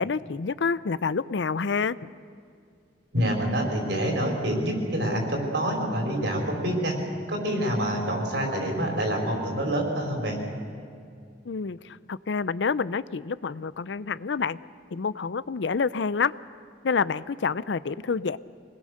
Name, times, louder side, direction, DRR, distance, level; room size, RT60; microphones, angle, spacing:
voice 1, 0.0-2.0 11.4-14.6 14.9-16.3 16.8-18.4, left 5 dB, 80° left, 17 dB, 0.5 m, -28 dB
voice 2, 3.1-6.9 7.3-10.4, equal, 70° right, 1 dB, 5.0 m, -27 dB
26.0 x 20.0 x 6.6 m, 2.3 s
head